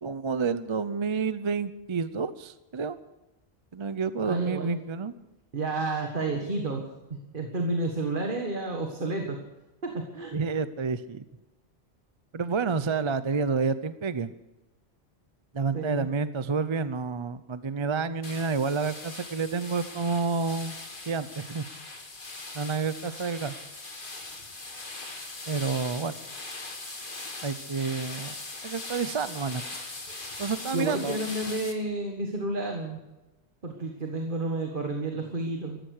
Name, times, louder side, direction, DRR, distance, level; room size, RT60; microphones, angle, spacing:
voice 1, 0.0-3.0 3.7-5.1 10.3-11.2 12.3-14.3 15.5-20.7 21.1-21.7 22.5-23.5 25.5-26.2 27.4-28.3 28.6-29.6 30.4-31.2, right 5 dB, 35° right, 13 dB, 0.6 m, -29 dB
voice 2, 4.2-4.8 5.5-9.4 9.8-10.3 15.7-16.1 30.1-30.2 30.7-33.0 33.6-35.8, right 2 dB, 50° right, 2 dB, 1.9 m, -31 dB
sound 1, 18.2-31.7, left 2 dB, 50° left, 2.1 m, -40 dB
14.5 x 14.0 x 6.6 m, 1.0 s
omnidirectional pair, 1.1 m